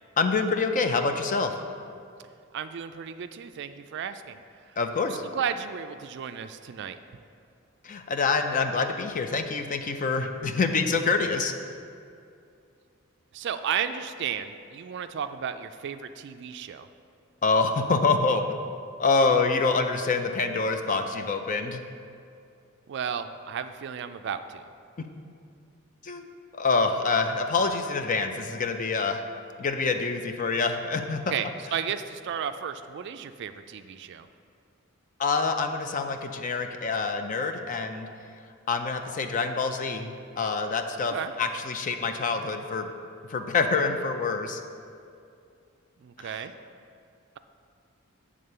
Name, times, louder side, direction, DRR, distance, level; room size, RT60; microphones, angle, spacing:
voice 1, 0.2-1.5 4.8-5.2 7.8-11.5 17.4-18.4 19.0-21.8 26.0-26.3 26.5-29.2 29.6-31.3 35.2-38.1 38.7-42.9 43.3-44.6 46.2-46.5, left 4 dB, 40° left, 6 dB, 0.5 m, -26 dB
voice 2, 2.5-4.4 5.3-7.0 13.3-16.9 22.9-24.6 31.3-34.3 41.1-41.3 46.0-46.5, right 8 dB, 55° right, 10 dB, 0.3 m, -33 dB
8.6 x 3.7 x 6.6 m, 2.4 s
head